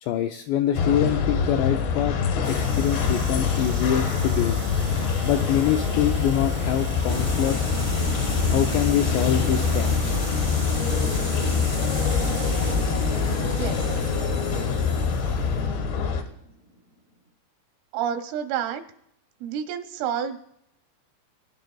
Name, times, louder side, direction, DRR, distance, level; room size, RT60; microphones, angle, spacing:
voice 1, 0.0-2.2 2.5-4.6 5.2-7.7 8.5-9.9, left 10 dB, 90° left, 5 dB, 2.4 m, -25 dB
sound 1, 0.8-16.2, left 6 dB, 70° left, 3.1 m, -25 dB
sound 2, 2.4-13.0, right 3 dB, 60° right, 1.0 m, -41 dB
sound 3, 7.1-16.7, equal, 45° left, 1.0 m, -33 dB
voice 2, 13.4-13.9 17.9-18.8 19.4-20.4, right 8 dB, 85° right, 6 dB, 3.4 m, -29 dB
24.5 x 10.5 x 2.3 m, 0.75 s
omnidirectional pair, 5.6 m